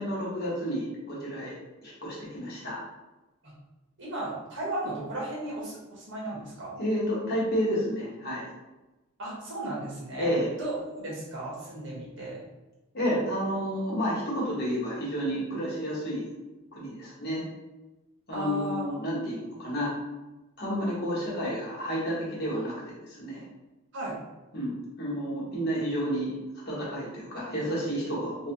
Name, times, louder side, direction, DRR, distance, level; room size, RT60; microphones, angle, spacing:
voice 1, 0.0-1.5 1.8-2.8 6.8-8.5 10.2-10.5 12.9-16.3 16.7-17.4 18.3-19.9 20.6-22.7 23.1-23.4 24.5-26.3 26.7-28.5, equal, 50° left, -6 dB, 1.4 m, -30 dB
voice 2, 4.0-6.8 9.2-10.3 10.6-12.4 18.3-18.9 23.9-24.2, right 2 dB, 65° right, -6 dB, 1.5 m, -35 dB
3.4 x 3.1 x 2.9 m, 1.1 s
head